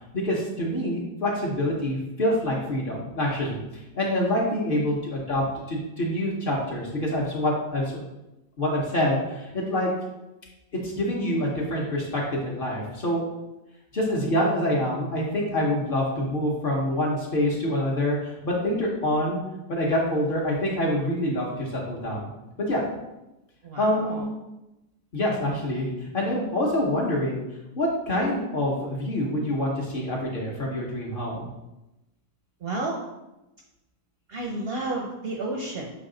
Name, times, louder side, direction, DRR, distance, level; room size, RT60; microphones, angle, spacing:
voice 1, 0.1-3.6 3.9-7.9 8.6-9.9 10.7-13.2 13.9-19.4 19.7-22.3 22.7-22.8 23.8-24.2 25.1-27.4 27.8-31.5, left 1 dB, 45° left, -3 dB, 0.9 m, -26 dB
voice 2, 4.5-4.8 23.6-24.3 32.6-33.0 34.3-35.9, right 2 dB, 60° right, -1 dB, 0.6 m, -32 dB
6.1 x 2.3 x 3.7 m, 0.97 s
omnidirectional pair, 1.5 m